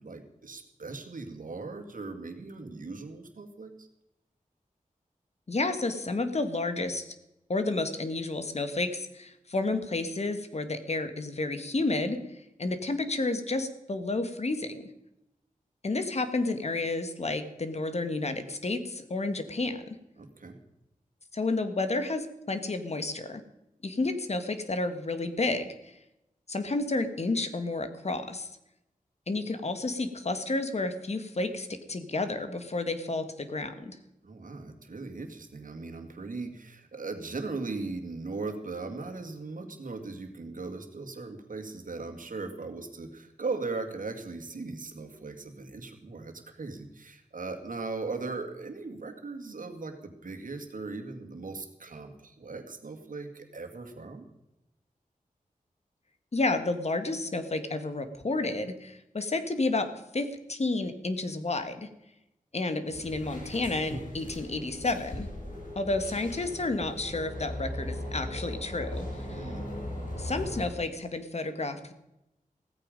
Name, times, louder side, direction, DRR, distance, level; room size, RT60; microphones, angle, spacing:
voice 1, 0.0-3.9 20.2-20.6 34.2-54.3 69.3-69.7, right 3 dB, 70° right, 5 dB, 2.2 m, -38 dB
voice 2, 5.5-7.1 7.5-12.2 12.6-14.9 15.8-20.0 21.3-23.4 23.8-25.9 26.5-28.5 29.3-34.0 56.3-61.9 62.5-65.3 65.8-69.5 70.2-71.9, left 2 dB, 50° left, 9 dB, 1.6 m, -31 dB
sound 1, 62.9-70.6, left 1 dB, 65° left, 7.2 m, -38 dB
16.0 x 14.5 x 5.2 m, 0.88 s
wide cardioid pair, 105°, 14 cm